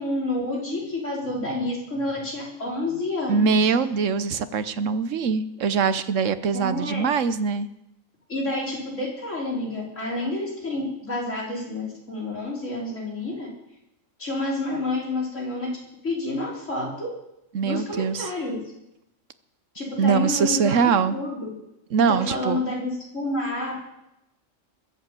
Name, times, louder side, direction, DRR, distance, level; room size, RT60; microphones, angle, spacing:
voice 1, 0.0-3.7 6.5-7.0 8.3-13.5 14.2-15.7 16.0-17.1 17.6-18.6 19.8-20.8 21.1-21.5 22.1-23.8, left 2 dB, 65° left, -4 dB, 5.2 m, -29 dB
voice 2, 3.3-7.7 17.5-18.3 20.0-21.2 21.9-22.6, right 6 dB, 70° right, 13 dB, 1.2 m, -23 dB
21.5 x 8.1 x 7.6 m, 0.86 s
omnidirectional pair, 1.4 m